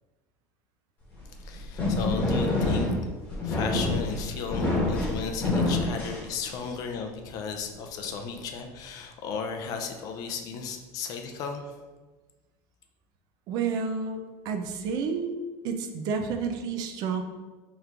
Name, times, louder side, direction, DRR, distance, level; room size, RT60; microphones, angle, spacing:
sound 1, 1.2-6.8, left 2 dB, 20° left, 1.1 m, -27 dB
voice 1, 1.4-2.9 3.4-11.8, left 6 dB, 40° left, 5 dB, 0.4 m, -35 dB
voice 2, 13.5-15.3 15.6-17.2, right 5 dB, 45° right, 5 dB, 0.4 m, -30 dB
3.6 x 3.1 x 3.3 m, 1.3 s
cardioid pair, 160°, 9 cm